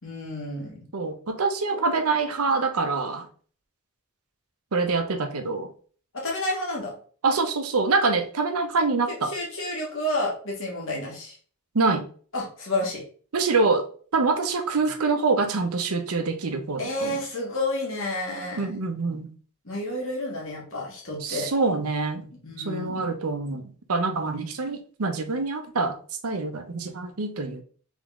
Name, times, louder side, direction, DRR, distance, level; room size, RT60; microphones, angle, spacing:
voice 1, 0.0-0.8 6.1-6.9 9.1-11.4 12.3-13.0 16.8-18.8 19.6-21.5 22.4-23.1, left 1 dB, 60° left, 1.8 m, -30 dB
voice 2, 0.9-3.3 4.7-5.7 7.2-9.3 11.7-12.1 13.3-17.1 18.6-19.3 21.2-22.3 22.7-26.0 26.2-27.6, right 3 dB, 80° right, 0.8 m, -25 dB
3.7 x 3.6 x 3.6 m
head